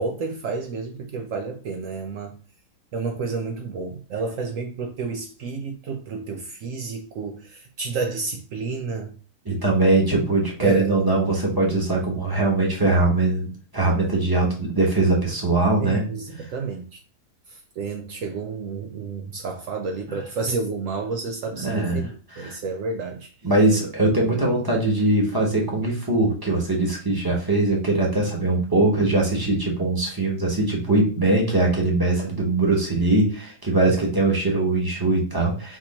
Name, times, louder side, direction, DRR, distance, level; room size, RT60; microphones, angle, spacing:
voice 1, 0.0-2.4 2.9-9.2 10.6-11.0 15.8-17.0 17.5-23.3 24.3-24.4 33.9-34.0, right 4 dB, 70° right, 0.8 m, -30 dB
voice 2, 9.4-16.1 21.5-22.0 22.3-22.6 23.4-35.8, right 2 dB, 15° right, 1.0 m, -21 dB
4.2 x 2.8 x 4.1 m
omnidirectional pair, 1.7 m